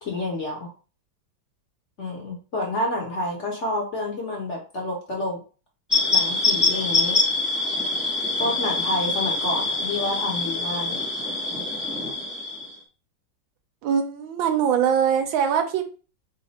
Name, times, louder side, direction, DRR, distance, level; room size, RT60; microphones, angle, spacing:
voice 1, 0.0-0.7 2.0-5.4 6.1-7.2 8.4-11.0, left 1 dB, 45° left, -2 dB, 1.1 m, -29 dB
sound 1, 5.9-12.7, left 3 dB, ahead, 0.4 m, -24 dB
voice 2, 13.8-15.8, right 8 dB, 75° right, 5 dB, 1.4 m, -22 dB
4.0 x 2.5 x 4.1 m, 0.36 s
omnidirectional pair, 2.2 m